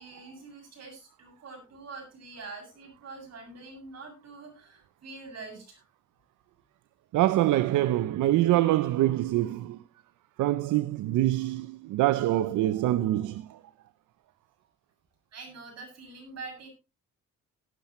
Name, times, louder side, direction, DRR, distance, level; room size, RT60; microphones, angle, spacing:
voice 1, 0.0-5.8 15.3-16.7, right 3 dB, 55° right, 7.3 m, -45 dB
voice 2, 7.1-9.8 10.4-13.6, right 15 dB, 85° right, 0.7 m, -25 dB
17.5 x 10.5 x 3.1 m
cardioid pair, 90°, 30 cm